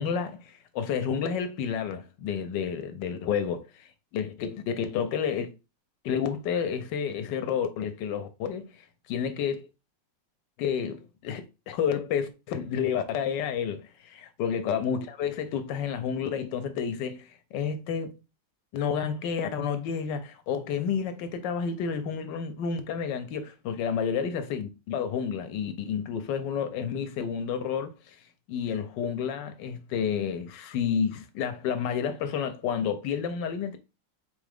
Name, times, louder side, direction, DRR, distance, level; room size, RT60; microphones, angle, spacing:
voice 1, 0.0-5.5 6.0-9.7 10.6-18.1 18.7-28.2 28.5-33.8, left 7 dB, 75° left, 1.2 m, -30 dB
3.7 x 3.6 x 3.3 m
omnidirectional pair, 2.1 m